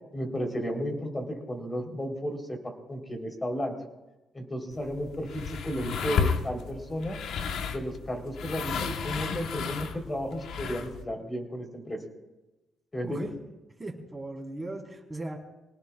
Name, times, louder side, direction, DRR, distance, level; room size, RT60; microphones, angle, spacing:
voice 1, 0.1-3.7 4.3-7.2 7.7-12.0 12.9-13.3, equal, 20° left, 3 dB, 3.6 m, -33 dB
sound 1, 4.7-11.0, left 6 dB, 75° left, 1.1 m, -33 dB
voice 2, 13.8-15.4, right 2 dB, 15° right, 1 dB, 4.0 m, -38 dB
25.5 x 18.5 x 2.4 m, 1.1 s
cardioid pair, 90°, 0 cm